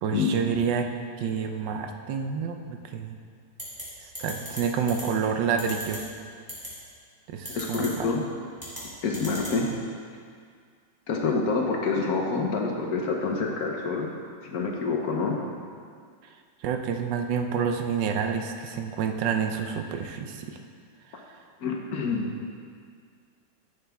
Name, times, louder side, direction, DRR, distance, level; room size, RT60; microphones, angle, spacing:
voice 1, 0.0-0.9 1.2-3.2 4.0-6.0 7.3-8.1 16.6-20.6 21.1-21.2, right 6 dB, 80° right, 5 dB, 1.3 m, -28 dB
sound 1, 3.6-3.8 4.1-4.6 4.9-5.0 5.6-6.0 6.5-6.7 7.4-7.9 8.6-8.8 9.1-9.5, equal, 10° right, 2.4 m, -36 dB
voice 2, 7.5-8.2 9.0-9.7 11.1-14.1 14.4-15.4 21.6-22.3, left 4 dB, 60° left, 0 dB, 1.2 m, -27 dB
11.0 x 6.9 x 3.5 m, 2.1 s
omnidirectional pair, 2.0 m